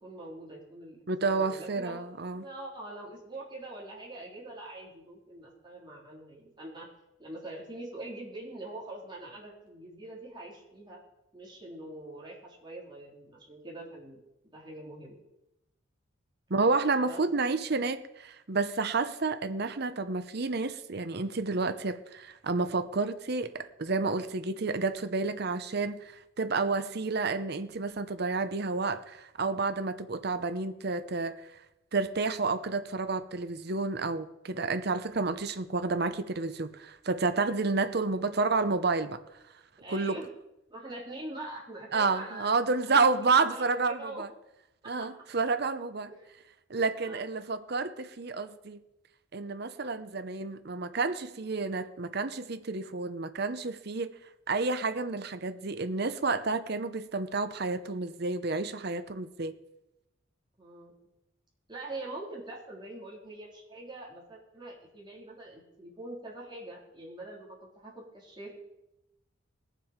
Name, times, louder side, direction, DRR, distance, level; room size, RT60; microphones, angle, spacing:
voice 1, 0.0-6.9 7.2-11.0 11.3-15.2 17.0-17.2 37.9-38.2 39.8-40.3 40.7-44.2 44.8-45.1 46.1-46.3 47.0-47.3 60.6-60.9 61.7-68.5, right 2 dB, 20° right, -4 dB, 3.5 m, -44 dB
voice 2, 1.1-2.5 16.5-26.1 26.4-31.3 31.9-39.2 39.9-40.2 41.9-44.3 44.9-46.1 46.7-48.8 49.3-54.1 54.5-59.5, right 3 dB, 50° right, 11 dB, 0.8 m, -30 dB
20.0 x 7.5 x 5.1 m, 0.91 s
head